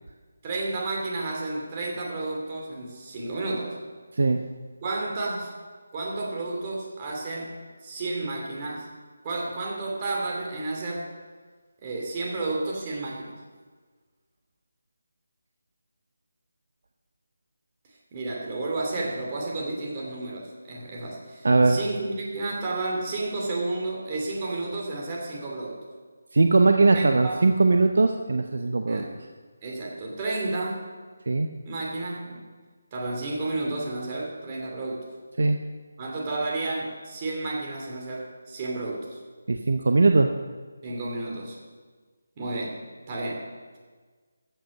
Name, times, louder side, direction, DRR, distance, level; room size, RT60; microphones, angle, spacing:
voice 1, 0.4-3.8 4.8-5.5 5.9-8.9 9.2-11.1 11.8-13.4 18.1-25.8 26.9-27.4 28.9-29.2 29.6-30.8 31.6-32.4 32.9-35.1 36.0-39.2 40.8-41.6 42.4-42.8 43.1-43.5, right 2 dB, 25° right, -2 dB, 2.7 m, -31 dB
voice 2, 21.4-21.8 26.3-29.0 31.3-31.5 35.4-35.6 39.5-40.3, right 3 dB, 60° right, 5 dB, 0.7 m, -20 dB
14.0 x 8.0 x 5.3 m, 1.5 s
figure-of-eight pair, 155°, 0 cm